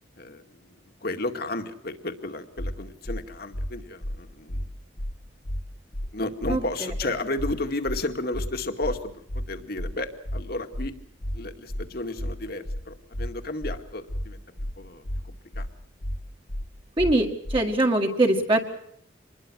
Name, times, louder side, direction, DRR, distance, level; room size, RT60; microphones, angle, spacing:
voice 1, 0.2-4.7 6.1-10.9 11.3-14.4 14.8-15.7, left 2 dB, 55° left, 6 dB, 2.2 m, -33 dB
sound 1, 2.6-2.7 3.0-3.2 3.5-3.7 4.0-4.2 4.5-4.6 5.0-5.1 5.4-5.6 5.9-6.1 6.4-6.6 6.9-7.0 7.4-7.5 7.8-8.0 8.3-8.5 8.8-9.0 9.3-9.4 9.8-9.9 10.2-10.4 10.7-10.9 11.2-11.4 11.7-11.8 12.2-12.3 12.6-12.8 13.1-13.3 13.6-13.8 14.1-14.2 14.6-14.7 15.0-15.2 15.5-15.7 16.0-16.2 16.5-16.6 17.0-17.1 17.4-17.6, equal, 75° left, 1.6 m, -31 dB
voice 2, 17.0-18.6, right 1 dB, 25° right, 1 dB, 2.0 m, -22 dB
26.0 x 21.0 x 6.3 m, 0.68 s
head